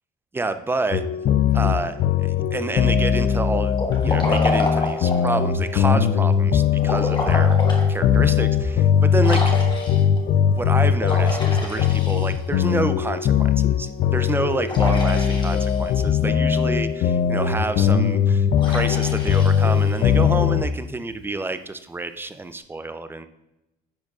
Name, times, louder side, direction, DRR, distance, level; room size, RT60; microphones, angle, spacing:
voice 1, 0.3-1.0 1.5-3.8 4.0-7.6 7.9-9.4 10.5-23.3, right 3 dB, 15° right, 10 dB, 0.4 m, -28 dB
sound 1, 0.9-20.7, left 8 dB, 60° left, 0.5 m, -20 dB
Liquid, 3.7-5.4 6.8-7.9 8.4-8.5 9.2-10.2 11.0-12.6 14.7-16.0 18.6-20.2, left 1 dB, 25° left, 1.4 m, -29 dB
10.5 x 4.4 x 2.4 m, 0.91 s
cardioid pair, 110°, 17 cm